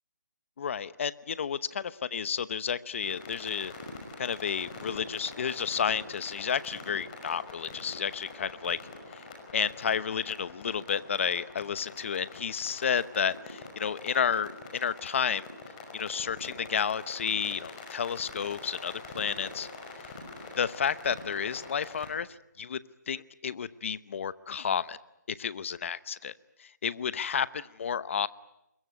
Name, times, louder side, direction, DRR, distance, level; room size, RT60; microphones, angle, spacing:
voice 1, 0.6-3.7 4.2-8.8 9.1-9.2 9.5-15.5 15.9-19.7 20.6-22.3 22.6-22.8 23.1-25.0 25.3-26.3 26.6-28.3, left 7 dB, 45° left, 17 dB, 0.9 m, -31 dB
sound 1, 3.0-22.1, left 3 dB, 25° left, 5.5 m, -45 dB
25.5 x 22.0 x 9.5 m, 0.83 s
hypercardioid pair, 165°, 10 cm